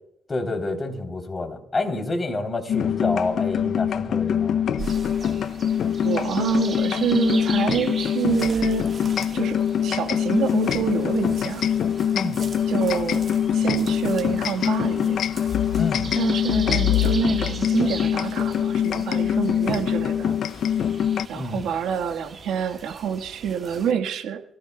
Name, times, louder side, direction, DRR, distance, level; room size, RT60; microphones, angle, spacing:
voice 1, 0.3-4.7 12.1-12.4 15.7-16.1 21.3-21.7, left 2 dB, 25° left, 3 dB, 3.4 m, -28 dB
sound 1, 2.7-21.3, left 9 dB, 65° left, 0.5 m, -24 dB
sound 2, 4.8-23.9, right 5 dB, 40° right, 1.5 m, -40 dB
voice 2, 6.0-8.8 9.3-11.7 12.7-13.2 13.5-15.2 16.1-20.3 21.3-24.4, right 8 dB, 80° right, 6 dB, 1.5 m, -27 dB
27.5 x 17.0 x 2.3 m, 0.80 s
cardioid pair, 90°, 0 cm